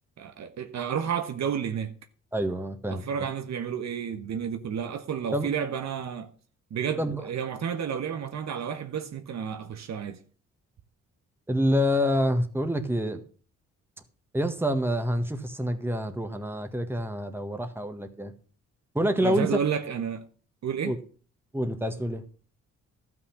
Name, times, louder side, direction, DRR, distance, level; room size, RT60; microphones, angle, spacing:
voice 1, 0.2-1.9 2.9-6.3 6.7-10.2 19.2-20.2 20.6-21.0, right 7 dB, 60° right, 1.2 m, -31 dB
voice 2, 2.3-3.1 5.3-5.5 7.0-7.3 11.5-13.2 14.3-18.3 19.0-19.6 20.8-21.0 21.5-22.2, equal, 5° right, 1.7 m, -27 dB
12.5 x 6.1 x 7.1 m
cardioid pair, 70°, 30 cm